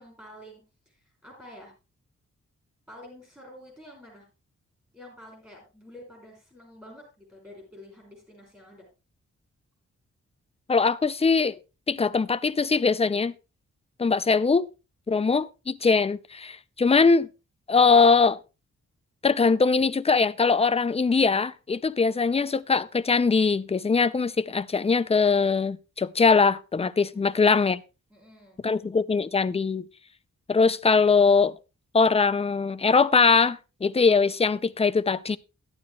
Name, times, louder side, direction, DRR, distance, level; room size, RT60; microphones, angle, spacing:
voice 1, 0.0-1.7 2.9-4.3 4.9-8.9 27.1-27.6 28.1-28.6, left 1 dB, 10° right, 5.9 m, -48 dB
voice 2, 10.7-11.6 11.9-13.3 14.0-14.7 15.1-17.3 17.7-18.4 19.2-27.8 28.6-29.8 30.5-31.5 31.9-35.4, left 4 dB, 20° left, 0.4 m, -21 dB
14.0 x 11.5 x 2.3 m
wide cardioid pair, 140°, 30 cm